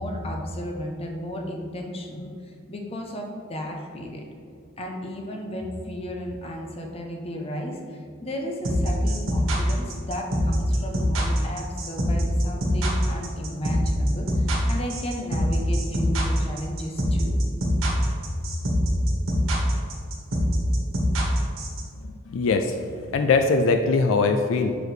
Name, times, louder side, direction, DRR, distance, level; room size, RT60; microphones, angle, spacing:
voice 1, 0.0-4.2 4.8-17.4 18.3-18.4 18.9-19.1, equal, 30° left, 1 dB, 0.7 m, -34 dB
sound 1, 8.6-21.8, equal, 80° right, 1.4 m, -24 dB
voice 2, 22.3-22.8 23.1-24.8, left 4 dB, 70° left, 6 dB, 0.3 m, -21 dB
6.2 x 4.7 x 3.2 m, 2.3 s
head